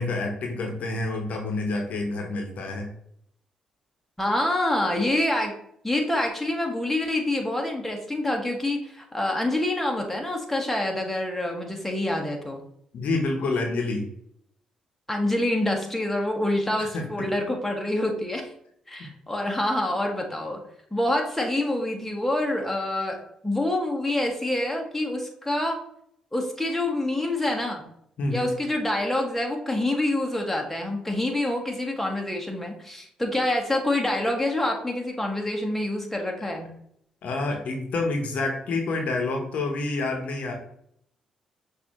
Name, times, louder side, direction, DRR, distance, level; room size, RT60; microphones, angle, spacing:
voice 1, 0.0-2.9 12.9-14.1 16.8-17.3 28.2-28.5 37.2-40.5, left 3 dB, 65° left, 3 dB, 0.9 m, -28 dB
voice 2, 4.2-5.6 5.8-12.6 15.1-18.5 18.9-20.6 20.9-25.8 26.3-27.8 28.3-36.7, left 1 dB, 5° left, 1 dB, 1.3 m, -26 dB
6.0 x 2.7 x 3.0 m, 0.72 s
supercardioid pair, 50°, 3 cm